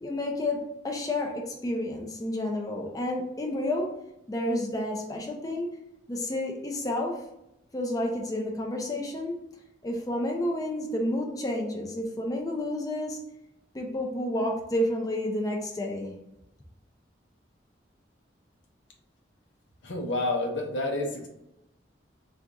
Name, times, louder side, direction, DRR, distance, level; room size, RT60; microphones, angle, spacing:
voice 1, 0.0-3.9 4.3-5.7 6.1-7.2 7.7-9.4 9.8-13.2 13.7-16.1, left 1 dB, 20° left, 1 dB, 0.4 m, -30 dB
voice 2, 19.8-21.3, left 2 dB, 90° left, 1 dB, 0.7 m, -29 dB
2.4 x 2.4 x 3.9 m, 0.85 s
head